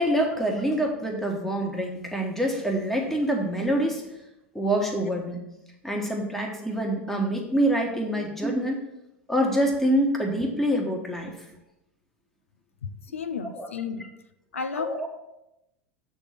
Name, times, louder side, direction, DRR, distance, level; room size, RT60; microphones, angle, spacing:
voice 1, 0.0-4.2 4.5-5.4 5.8-8.8 9.3-11.4 13.6-13.7 14.8-15.1, right 1 dB, 5° left, 1 dB, 1.3 m, -26 dB
voice 2, 12.8-14.1 14.5-15.1, left 5 dB, 85° left, 11 dB, 0.5 m, -33 dB
7.8 x 3.7 x 5.8 m, 0.88 s
hypercardioid pair, 85°, 7 cm